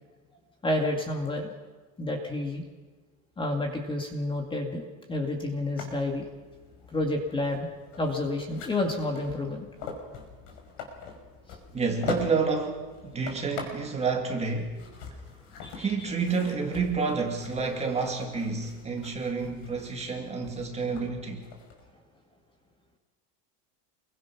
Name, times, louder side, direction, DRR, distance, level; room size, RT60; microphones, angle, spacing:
voice 1, 0.6-1.5 2.0-2.6 3.4-4.8 5.1-6.3 6.9-7.7 8.0-9.7 15.6-16.1, left 2 dB, 10° left, 3 dB, 2.1 m, -30 dB
sound 1, 5.8-21.8, left 5 dB, 55° left, 5.6 m, -43 dB
voice 2, 11.7-14.8 15.1-15.2 15.7-21.5, right 4 dB, 15° right, 2 dB, 2.2 m, -29 dB
28.5 x 22.5 x 5.9 m, 1.3 s
supercardioid pair, 170°, 45 cm